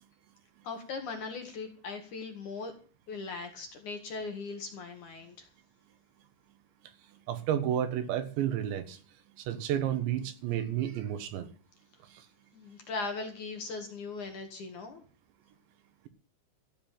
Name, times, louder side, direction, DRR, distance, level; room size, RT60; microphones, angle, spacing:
voice 1, 0.6-2.7 3.1-5.5 12.5-15.0, left 4 dB, 50° left, 2.7 m, -39 dB
voice 2, 7.3-9.0 9.4-11.5, right 10 dB, 75° right, 3.7 m, -31 dB
15.0 x 7.6 x 9.1 m
omnidirectional pair, 5.3 m